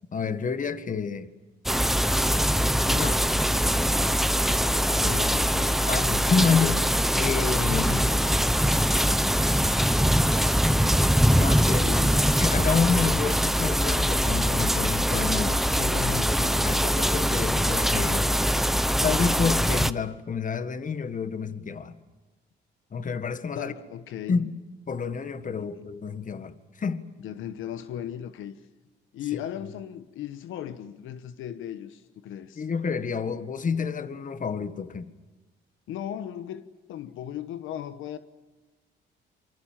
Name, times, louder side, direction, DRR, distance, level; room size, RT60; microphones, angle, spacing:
voice 1, 0.1-1.3 2.9-3.2 5.0-5.2 5.9-6.8 7.1-7.9 11.3-11.9 12.4-15.6 16.6-18.3 19.0-21.9 22.9-23.7 24.3-24.5 24.9-27.0 32.6-35.1, left 5 dB, 40° left, 1.7 m, -29 dB
sound 1, 1.7-19.9, equal, ahead, 0.9 m, -23 dB
voice 2, 5.1-5.8 7.7-8.1 11.8-12.3 15.8-16.9 23.5-24.4 25.5-25.8 27.2-28.6 29.1-32.6 33.3-33.4 35.9-36.6 36.9-38.2, left 10 dB, 85° left, 1.2 m, -36 dB
27.0 x 24.5 x 7.5 m
cardioid pair, 90°, 20 cm